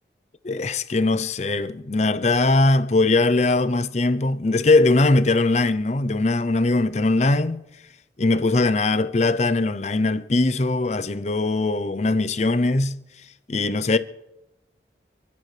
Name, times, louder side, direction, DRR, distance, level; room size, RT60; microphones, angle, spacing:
voice 1, 0.4-7.6 8.2-13.0 13.5-14.0, left 2 dB, 40° left, 0.6 m, -21 dB
28.0 x 12.0 x 3.3 m
head